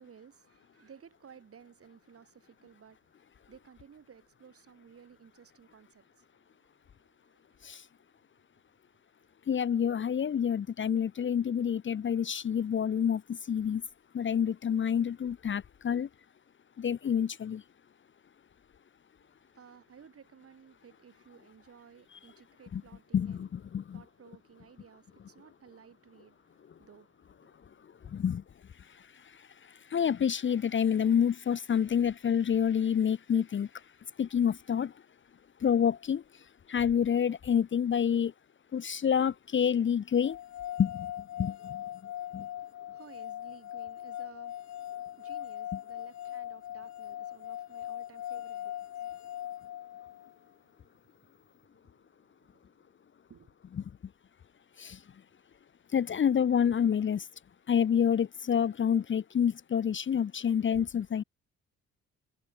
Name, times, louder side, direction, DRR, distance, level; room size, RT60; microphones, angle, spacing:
voice 1, 0.0-7.8 8.1-8.2 9.2-9.3 19.2-23.5 23.9-28.3 42.6-53.0 53.3-53.6, right 7 dB, 50° right, 5.3 m, -57 dB
voice 2, 9.5-13.8 14.1-16.1 16.8-17.6 22.7-22.8 23.1-24.0 28.0-28.4 28.9-33.7 34.2-34.9 35.6-38.3 38.7-40.4 40.8-41.1 41.4-41.8 42.3-42.5 54.8-55.0 55.9-57.3 57.7-61.2, left 8 dB, 40° left, 0.9 m, -28 dB
sound 1, 40.2-50.3, left 12 dB, 65° left, 1.1 m, -40 dB
cardioid pair, 90°, 30 cm